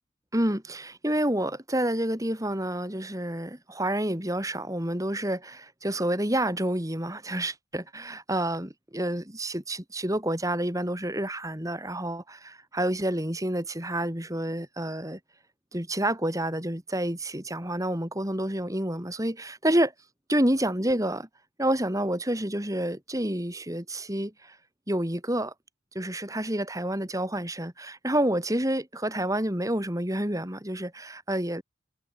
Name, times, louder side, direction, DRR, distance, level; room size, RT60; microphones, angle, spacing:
voice 1, 0.3-15.2 15.7-19.9 20.3-21.3 21.6-24.6 24.9-25.5 25.9-31.6, right 1 dB, 15° right, 3.9 m, -29 dB
head